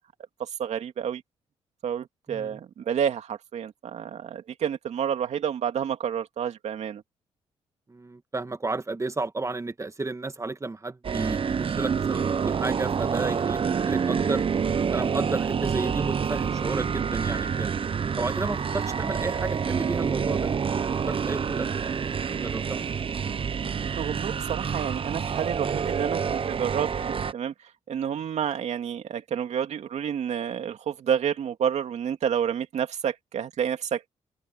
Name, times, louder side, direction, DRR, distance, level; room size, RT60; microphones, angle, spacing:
voice 1, 0.4-1.2 1.8-7.0 24.0-27.5 27.9-34.1, right 8 dB, 70° right, 2.6 m, -29 dB
voice 2, 2.3-2.6 7.9-14.4 14.9-17.7 18.2-20.5 20.8-22.0 22.4-22.9, right 3 dB, 25° right, 2.1 m, -32 dB
sound 1, 11.0-27.3, right 6 dB, 50° right, 1.1 m, -27 dB
open air
cardioid pair, 70°, 12 cm